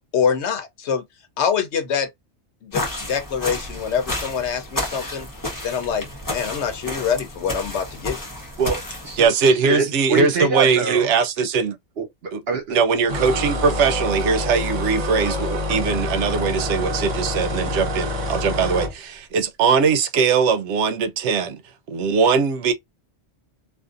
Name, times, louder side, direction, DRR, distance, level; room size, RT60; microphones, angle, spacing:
voice 1, 0.1-1.0 1.4-2.1 2.6-5.3 5.6-8.2, left 7 dB, 75° left, 1.0 m, -25 dB
sound 1, 2.7-9.3, left 1 dB, 20° left, 0.9 m, -31 dB
voice 2, 8.6-9.3 9.6-11.1 12.0-12.8, right 5 dB, 65° right, 1.1 m, -25 dB
voice 3, 9.2-11.8 12.3-12.4 12.7-21.6 21.9-22.7, right 5 dB, 85° right, 0.9 m, -20 dB
sound 2, 13.1-18.9, left 1 dB, 45° right, 0.7 m, -26 dB
2.5 x 2.4 x 2.4 m
omnidirectional pair, 1.2 m